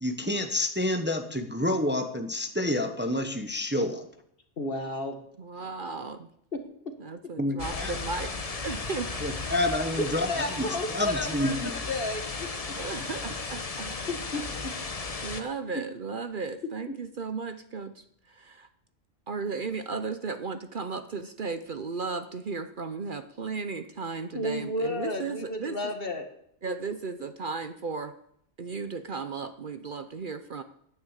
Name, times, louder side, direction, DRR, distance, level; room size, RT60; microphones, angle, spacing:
voice 1, 0.0-4.1 7.4-8.0 9.2-10.6 10.9-11.9, left 1 dB, 10° right, 6 dB, 1.0 m, -29 dB
voice 2, 4.6-5.2 5.6-5.7 6.5-6.6 10.0-12.8 14.1-14.7 24.3-26.3 26.7-26.8, left 1 dB, 50° left, 6 dB, 1.8 m, -32 dB
voice 3, 5.4-6.3 7.0-8.3 8.6-9.6 12.8-14.0 14.9-18.7 19.3-25.8 26.6-28.1 28.6-30.6, right 4 dB, 50° right, 10 dB, 0.9 m, -35 dB
sound 1, 7.6-15.4, left 4 dB, 35° left, 1.0 m, -35 dB
9.9 x 9.4 x 8.1 m, 0.71 s
omnidirectional pair, 1.2 m